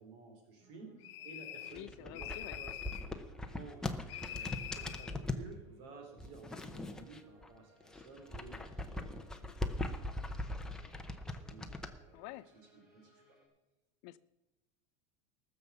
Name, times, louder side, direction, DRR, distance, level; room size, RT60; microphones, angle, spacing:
voice 1, 0.0-2.8 3.5-3.8 4.2-9.2 9.5-12.2 12.5-13.4, right 4 dB, 55° right, 3 dB, 2.9 m, -54 dB
sound 1, 0.6-13.5, equal, 20° right, 4.5 m, -65 dB
sound 2, 1.0-1.8 2.1-3.1 4.1-5.2, left 12 dB, 70° left, 0.9 m, -44 dB
sound 3, 1.6-5.5 6.2-7.5 7.8-11.9, left 1 dB, 5° left, 0.6 m, -40 dB
voice 2, 1.7-2.6 12.1-12.5 14.0-14.2, left 16 dB, 45° left, 15 dB, 0.5 m, -48 dB
19.0 x 6.9 x 7.0 m, 1.0 s
supercardioid pair, 170°, 16 cm